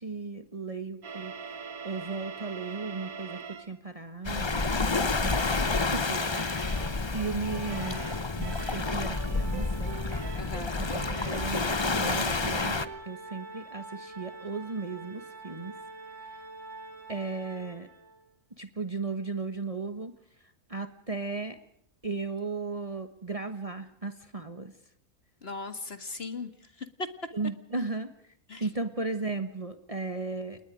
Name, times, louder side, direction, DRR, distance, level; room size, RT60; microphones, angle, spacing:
voice 1, 0.0-1.6 1.8-6.2 6.9-8.0 8.4-10.0 10.8-12.8 13.0-15.8 17.1-17.9 18.6-20.1 20.7-21.6 22.0-24.7 27.3-28.1 28.6-30.6, right 3 dB, 25° right, 9 dB, 1.3 m, -36 dB
sound 1, 1.0-3.8 4.5-4.8 5.3-5.6 6.0-13.1, right 6 dB, 70° right, 1.8 m, -43 dB
Waves surf, 4.2-12.9, left 3 dB, 25° left, 0.7 m, -29 dB
Organ, 7.3-18.2, right 3 dB, 90° right, 4.4 m, -46 dB
voice 2, 10.4-10.8 25.4-26.5 26.8-27.1 28.5-28.7, left 3 dB, 45° left, 9 dB, 2.0 m, -38 dB
29.0 x 20.0 x 5.1 m, 0.72 s
omnidirectional pair, 1.5 m